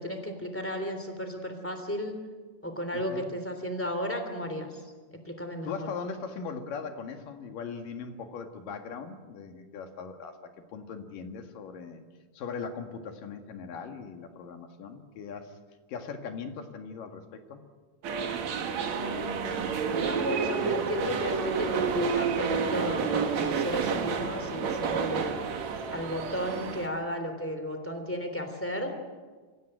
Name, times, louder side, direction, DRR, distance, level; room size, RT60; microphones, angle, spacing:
voice 1, 0.0-2.2 2.6-4.8 5.2-5.9 18.9-25.4 25.9-29.0, equal, 5° left, 5 dB, 2.9 m, -34 dB
voice 2, 2.9-3.3 5.7-12.0 12.3-15.6 15.9-17.6, left 5 dB, 90° left, 5 dB, 3.6 m, -39 dB
sound 1, 18.0-26.9, right 5 dB, 60° right, 2.8 m, -30 dB
26.0 x 16.5 x 9.0 m, 1.4 s
omnidirectional pair, 3.7 m